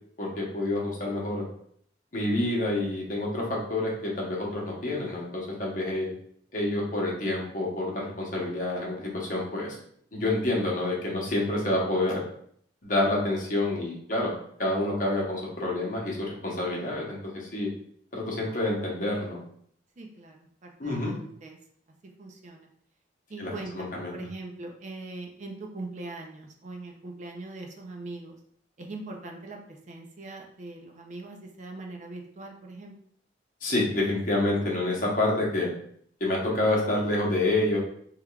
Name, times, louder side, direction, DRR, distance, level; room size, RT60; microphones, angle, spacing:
voice 1, 0.2-1.5 2.1-6.1 6.5-9.8 10.1-12.2 12.8-14.3 14.6-17.7 18.1-19.4 20.8-21.1 23.4-24.2 33.6-35.7 36.2-37.8, left 2 dB, 45° left, -3 dB, 0.9 m, -28 dB
voice 2, 20.0-21.6 22.2-22.7 23.3-28.4 28.8-32.9, right 2 dB, 40° right, 2 dB, 0.4 m, -41 dB
3.5 x 3.2 x 2.3 m, 0.64 s
head